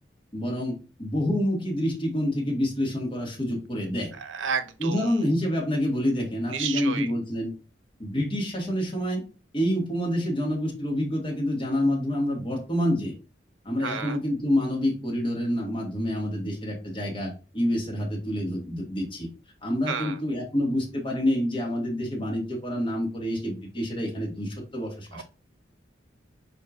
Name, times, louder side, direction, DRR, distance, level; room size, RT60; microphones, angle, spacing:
voice 1, 0.3-4.1 4.8-7.5 8.0-9.2 9.5-13.1 13.6-19.3 19.6-25.2, left 1 dB, 25° left, 1.4 m, -27 dB
voice 2, 4.1-5.1 6.5-7.1 13.8-14.2 19.9-20.2 25.1-25.2, right 6 dB, 85° right, 0.6 m, -31 dB
4.5 x 4.3 x 2.4 m
head